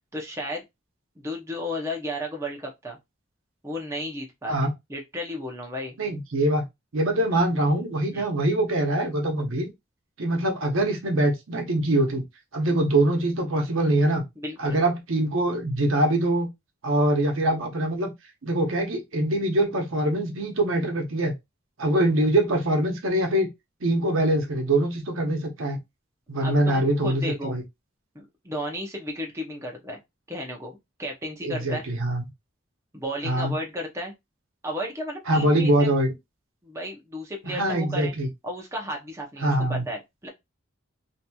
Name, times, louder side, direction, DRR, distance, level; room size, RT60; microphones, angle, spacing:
voice 1, 0.1-0.6 1.2-3.0 3.6-6.0 8.1-8.3 14.4-14.8 26.4-27.6 28.1-30.0 30.3-31.8 32.9-34.1 34.6-35.9 36.6-38.1 38.4-40.3, equal, 15° right, 0.6 m, -34 dB
voice 2, 6.0-6.6 6.9-9.7 10.2-12.2 12.5-14.2 14.6-16.5 16.8-18.1 18.4-21.3 21.8-23.5 23.8-25.8 26.3-27.6 31.4-32.2 33.2-33.5 35.3-36.1 37.4-38.3 39.4-39.8, right 1 dB, 85° right, 0.8 m, -23 dB
2.9 x 2.7 x 2.2 m
head